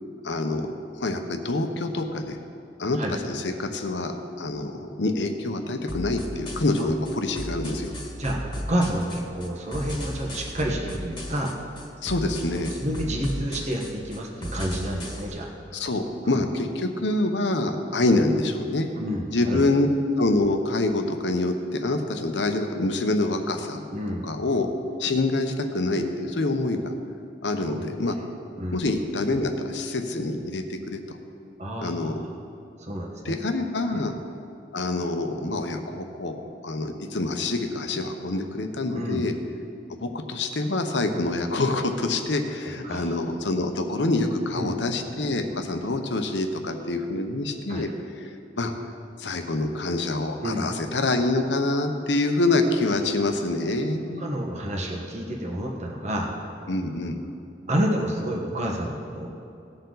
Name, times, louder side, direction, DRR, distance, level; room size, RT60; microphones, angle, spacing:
voice 1, 0.2-0.7 1.0-2.4 2.8-7.9 12.0-12.7 15.7-18.9 19.3-19.9 20.2-23.8 24.2-24.7 25.0-26.9 27.4-28.2 28.7-31.2 31.8-32.2 33.2-34.1 34.7-39.3 40.0-47.9 48.2-48.3 48.6-48.7 49.2-54.3 56.7-57.2, left 2 dB, 75° left, 5 dB, 1.0 m, -26 dB
sound 1, 5.9-15.3, equal, 25° left, 1.7 m, -36 dB
voice 2, 8.2-11.5 12.5-15.5 16.2-16.4 19.0-19.7 23.9-24.3 27.6-28.1 28.6-28.8 31.6-32.1 32.8-33.3 33.9-34.1 38.9-39.2 42.8-43.1 44.5-44.8 47.7-47.9 50.4-50.7 54.2-56.3 57.7-59.3, equal, 40° right, 0 dB, 1.3 m, -29 dB
18.0 x 6.9 x 4.0 m, 2.6 s
head